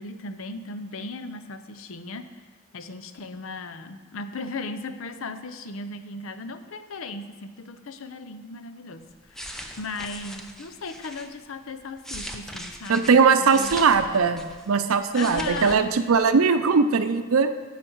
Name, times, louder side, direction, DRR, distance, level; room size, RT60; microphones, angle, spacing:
voice 1, 0.0-13.7 15.1-15.8, left 3 dB, 75° left, 9 dB, 0.6 m, -37 dB
sound 1, 9.1-11.3 11.8-14.7 15.0-15.8 16.1-16.3, equal, ahead, 0.6 m, -39 dB
voice 2, 12.9-17.5, right 5 dB, 85° right, 9 dB, 0.6 m, -20 dB
14.0 x 5.1 x 4.6 m, 1.4 s
head